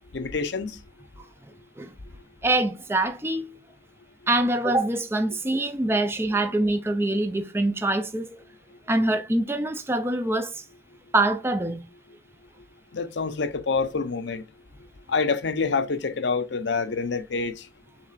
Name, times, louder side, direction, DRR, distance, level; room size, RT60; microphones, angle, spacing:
voice 1, 0.1-0.8 12.9-14.4 15.1-17.6, left 4 dB, 75° left, 0.6 m, -27 dB
voice 2, 2.4-3.6 4.3-8.4 8.9-10.6 11.1-11.8, right 2 dB, 15° right, 0.4 m, -24 dB
5.9 x 3.3 x 2.4 m
head